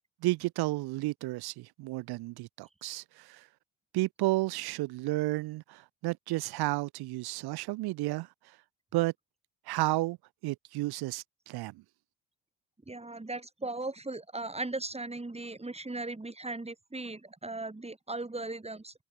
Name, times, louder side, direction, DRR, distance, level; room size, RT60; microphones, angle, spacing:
voice 1, 0.2-3.5 3.9-8.6 8.9-9.1 9.7-10.2 10.4-11.7, right 19 dB, 75° right, 1.5 m, -32 dB
voice 2, 12.9-18.9, right 2 dB, 15° right, 6.5 m, -38 dB
supercardioid pair, 65°, 39 cm